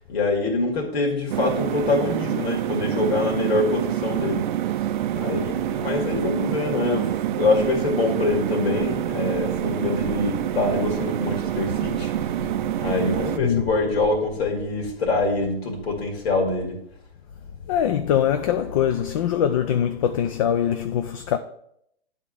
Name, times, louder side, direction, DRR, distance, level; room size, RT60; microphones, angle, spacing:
voice 1, 0.1-4.5 5.1-12.1 12.8-16.8, left 3 dB, 70° left, 2.3 m, -25 dB
sound 1, 1.3-13.4, right 12 dB, 50° right, 0.5 m, -27 dB
voice 2, 12.4-12.8 13.4-13.7 17.7-21.4, left 9 dB, 35° left, 0.4 m, -23 dB
9.6 x 3.7 x 6.7 m
hypercardioid pair, 135°, 32 cm